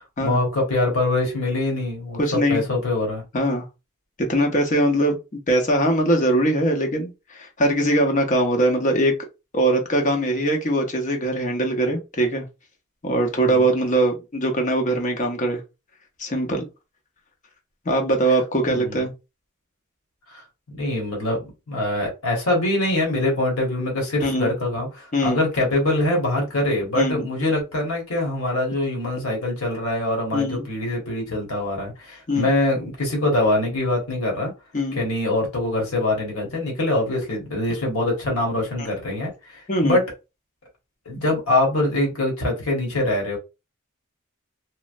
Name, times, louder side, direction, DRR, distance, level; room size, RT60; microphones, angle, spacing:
voice 1, 0.0-3.2 13.5-13.6 18.7-19.0 20.3-20.4 20.7-34.5 35.0-40.0 41.0-43.4, left 2 dB, 85° left, 1.2 m, -24 dB
voice 2, 2.2-2.6 3.3-3.7 4.2-9.2 9.5-12.5 13.0-15.6 16.2-16.6 17.8-19.1 24.2-24.5 25.1-25.4 26.9-27.3 30.3-30.7 32.3-32.5 34.7-35.0 38.8-38.9 39.7-40.0, right 1 dB, 35° left, 0.6 m, -21 dB
3.1 x 2.0 x 2.5 m
head